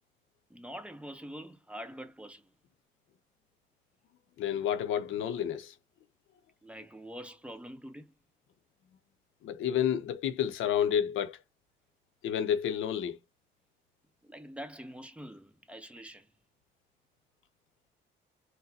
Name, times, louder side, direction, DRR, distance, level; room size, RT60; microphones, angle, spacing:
voice 1, 0.5-2.4 6.6-8.1 14.2-16.3, equal, 5° right, 0.7 m, -45 dB
voice 2, 4.4-5.7 9.4-11.4 12.2-13.2, left 9 dB, 80° left, 0.6 m, -30 dB
3.9 x 2.1 x 2.7 m
cardioid pair, 90°, 20 cm